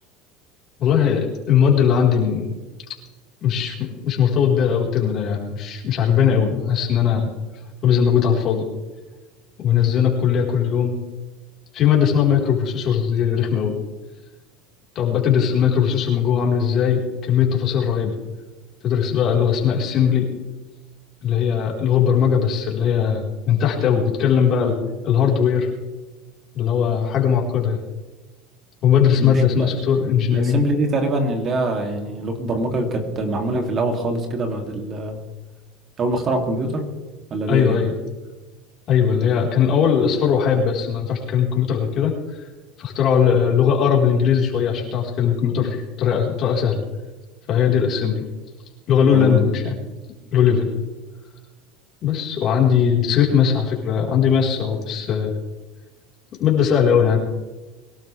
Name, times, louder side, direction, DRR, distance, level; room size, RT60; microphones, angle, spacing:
voice 1, 0.8-2.5 3.4-3.8 4.0-7.3 7.8-8.6 9.6-10.9 11.7-13.7 14.9-18.1 18.8-20.2 21.2-24.8 25.0-25.7 26.5-27.8 28.8-30.6 37.5-37.9 38.9-42.1 42.8-46.8 47.5-48.2 48.9-49.8 50.3-50.7 52.0-55.3 56.4-57.2, left 8 dB, 50° left, -1 dB, 4.5 m, -19 dB
voice 2, 29.2-29.7 30.3-35.2 36.0-36.9 37.3-37.8 49.1-49.4, right 2 dB, 35° right, 3 dB, 3.0 m, -24 dB
23.0 x 12.0 x 3.5 m, 1.2 s
supercardioid pair, 110°, 0 cm